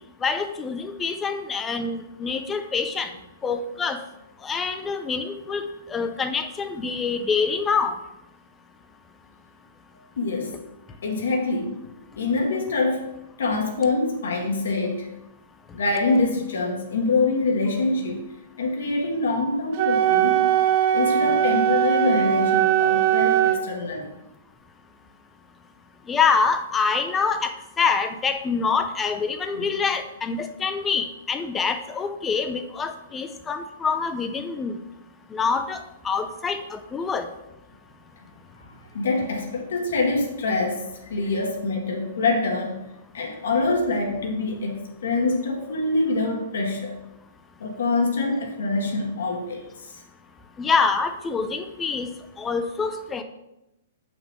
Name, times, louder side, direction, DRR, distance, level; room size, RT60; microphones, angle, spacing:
voice 1, 0.2-3.1 3.4-4.0 4.4-5.6 5.9-7.9 26.1-34.8 35.3-37.3 50.6-52.1 52.4-53.2, left 5 dB, 10° left, 8 dB, 0.5 m, -25 dB
voice 2, 10.2-10.6 11.0-11.8 12.1-13.1 13.4-15.1 15.7-18.3 18.6-20.4 20.9-24.1 38.6-42.8 43.1-47.0 47.6-49.6, left 3 dB, 85° left, 0 dB, 1.6 m, -25 dB
Wind instrument woodwind instrument, 19.7-23.6, right 11 dB, 40° right, 0.6 m, -20 dB
6.8 x 5.8 x 3.6 m, 0.90 s
hypercardioid pair, 165°, 0 cm